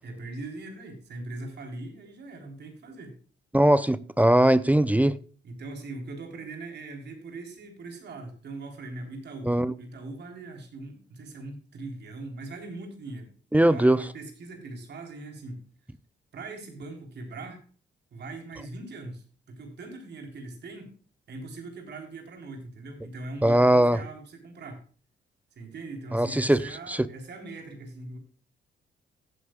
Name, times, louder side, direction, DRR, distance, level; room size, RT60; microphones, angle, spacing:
voice 1, 0.0-3.2 5.4-13.3 13.6-15.6 16.3-17.6 18.1-20.9 21.3-24.8 25.6-28.2, right 2 dB, 60° right, 3.9 m, -41 dB
voice 2, 3.5-5.2 9.5-9.7 13.5-14.0 23.4-24.0 26.1-26.6 26.9-27.0, right 1 dB, 5° right, 0.6 m, -20 dB
16.0 x 9.4 x 2.4 m
cardioid pair, 90°, 20 cm